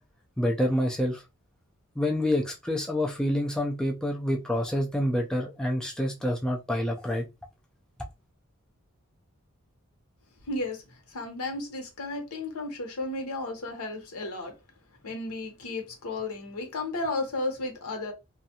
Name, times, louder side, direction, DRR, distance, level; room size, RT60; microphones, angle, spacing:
voice 1, 0.4-1.2 2.0-7.3, left 1 dB, 5° left, 0.3 m, -27 dB
voice 2, 10.4-14.5 15.0-18.1, left 2 dB, 80° left, 0.8 m, -33 dB
2.5 x 2.3 x 2.7 m
head